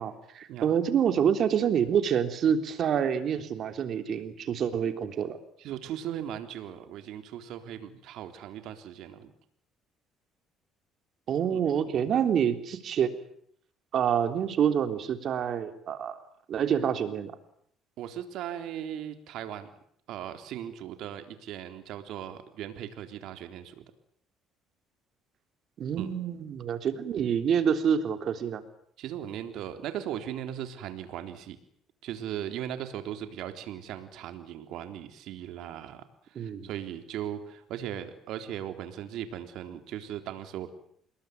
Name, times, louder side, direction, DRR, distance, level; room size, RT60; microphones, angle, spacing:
voice 1, 0.0-5.4 11.3-13.1 13.9-16.2 16.5-17.3 25.8-28.6 36.4-36.7, right 8 dB, 55° right, 9 dB, 3.5 m, -27 dB
voice 2, 5.6-9.3 11.5-11.6 18.0-19.7 20.1-23.8 26.0-26.1 29.0-31.6 32.0-36.0 36.4-40.7, right 10 dB, 70° right, 8 dB, 3.7 m, -38 dB
27.5 x 21.0 x 9.6 m, 0.66 s
cardioid pair, 110°, 0 cm